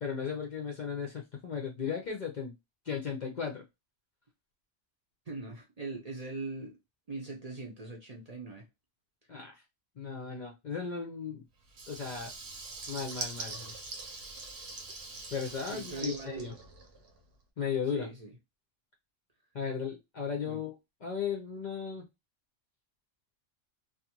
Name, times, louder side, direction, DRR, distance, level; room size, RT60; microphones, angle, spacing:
voice 1, 0.0-2.5 2.8-3.6 9.3-9.5 10.0-11.4 11.9-12.3 12.9-13.8 15.3-16.6 17.6-18.1 19.5-20.7 21.0-22.1, left 6 dB, 50° left, 0.6 m, -36 dB
voice 2, 5.3-6.8 7.1-8.7 15.7-16.4 17.9-18.3 20.4-20.6, right 3 dB, 40° right, 0.6 m, -41 dB
Water tap faucet / Liquid, 11.7-17.2, right 3 dB, 65° right, 0.9 m, -43 dB
2.4 x 2.4 x 2.9 m
omnidirectional pair, 1.2 m